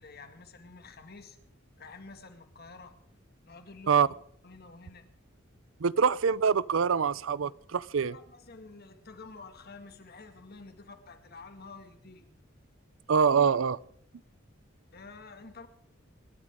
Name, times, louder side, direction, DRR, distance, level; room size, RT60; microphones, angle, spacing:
voice 1, 0.0-1.4 1.8-3.0 3.4-4.2 4.4-5.1 8.0-12.2 14.9-15.7, left 4 dB, 55° left, 2.1 m, -49 dB
voice 2, 5.8-8.2 13.1-13.8, right 6 dB, 90° right, 0.5 m, -25 dB
26.5 x 12.5 x 3.7 m
head